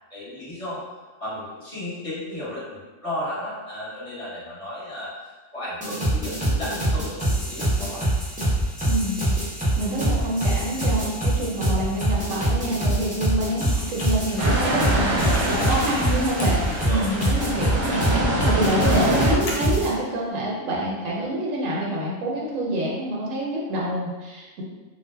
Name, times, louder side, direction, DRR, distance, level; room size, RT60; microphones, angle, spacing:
voice 1, 0.1-0.8 1.2-8.1 15.1-15.7 16.7-17.1, left 1 dB, 30° left, -9 dB, 1.0 m, -34 dB
sound 1, 5.8-19.9, right 1 dB, 10° right, 0.5 m, -24 dB
voice 2, 8.8-9.3 9.8-18.0 18.4-24.6, right 1 dB, 80° right, -4 dB, 1.0 m, -27 dB
Computer keyboard, 13.6-20.3, left 1 dB, 85° left, 1.0 m, -40 dB
sound 2, 14.4-19.4, right 1 dB, 45° right, 0.8 m, -25 dB
2.4 x 2.1 x 3.2 m, 1.3 s
omnidirectional pair, 1.3 m